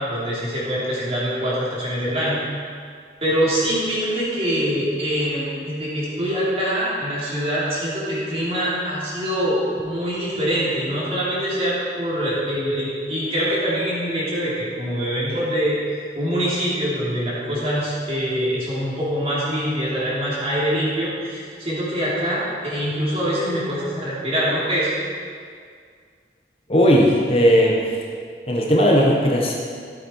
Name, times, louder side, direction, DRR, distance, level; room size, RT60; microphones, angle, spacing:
voice 1, 0.0-2.4 3.2-15.7 16.1-24.9, equal, 35° right, -8 dB, 3.3 m, -24 dB
voice 2, 26.7-28.0 28.5-29.5, equal, 35° left, -2 dB, 1.2 m, -17 dB
13.0 x 8.2 x 4.7 m, 2.1 s
head